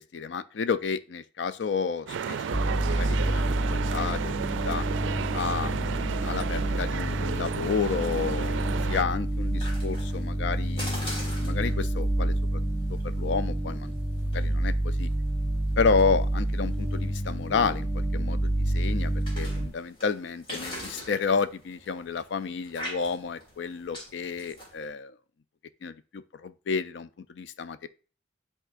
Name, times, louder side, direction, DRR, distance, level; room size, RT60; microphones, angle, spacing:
voice 1, 0.0-4.9 5.3-12.6 12.9-13.9 14.3-15.1 15.8-25.1 25.8-27.9, left 5 dB, 75° left, 0.4 m, -31 dB
sound 1, 2.1-9.0, right 7 dB, 90° right, 0.3 m, -33 dB
sound 2, 2.5-19.7, right 1 dB, 10° right, 2.9 m, -28 dB
sound 3, 6.2-24.9, equal, 30° left, 3.1 m, -45 dB
10.0 x 3.8 x 2.5 m
head